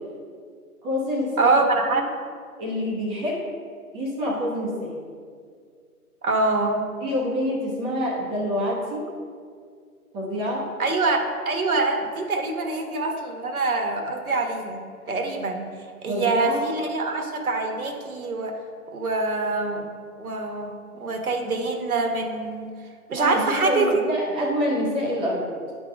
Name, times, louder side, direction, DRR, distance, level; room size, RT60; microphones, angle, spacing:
voice 1, 0.8-1.5 1.9-2.0 2.6-3.4 3.9-4.9 7.0-9.1 10.1-10.7 16.1-16.6 23.2-25.5, equal, 10° right, -4 dB, 0.8 m, -26 dB
voice 2, 1.4-2.0 6.2-6.8 10.8-14.8 15.1-15.7 16.0-18.6 18.9-19.9 20.2-22.7 23.1-24.0, right 3 dB, 70° right, 4 dB, 1.3 m, -24 dB
10.5 x 3.8 x 5.1 m, 2.1 s
figure-of-eight pair, 135°, 45 cm